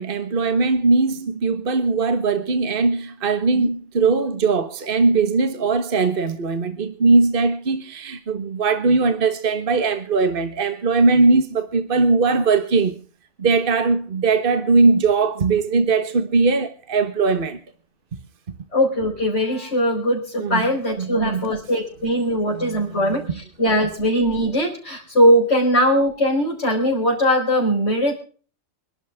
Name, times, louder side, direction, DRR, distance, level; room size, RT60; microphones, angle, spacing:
voice 1, 0.0-12.9 13.4-17.6 20.4-20.6 21.0-21.5 22.5-22.8 23.1-23.2, right 4 dB, 45° right, 1.5 m, -20 dB
voice 2, 18.7-28.1, equal, 60° left, 4.6 m, -20 dB
26.0 x 11.5 x 3.6 m
omnidirectional pair, 1.3 m